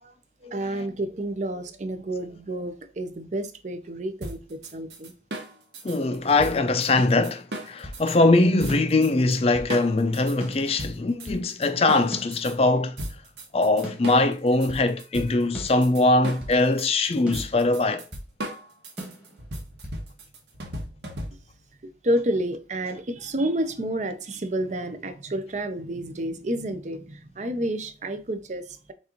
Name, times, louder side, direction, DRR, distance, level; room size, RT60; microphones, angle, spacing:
voice 1, 0.4-5.1 21.8-28.9, right 1 dB, 40° right, 0.6 m, -30 dB
sound 1, 4.2-8.2 8.6-9.4 9.7-12.5 13.0-21.6, right 1 dB, 80° right, 1.2 m, -37 dB
voice 2, 5.8-13.0 13.5-18.0, left 2 dB, 35° left, 0.4 m, -22 dB
sound 2, 7.0-8.1 8.7-9.8 10.4-11.5 12.1-13.2 13.8-14.9 15.5-16.6 17.3-18.3 19.0-20.0, equal, 5° right, 1.2 m, -40 dB
6.2 x 2.5 x 2.9 m
head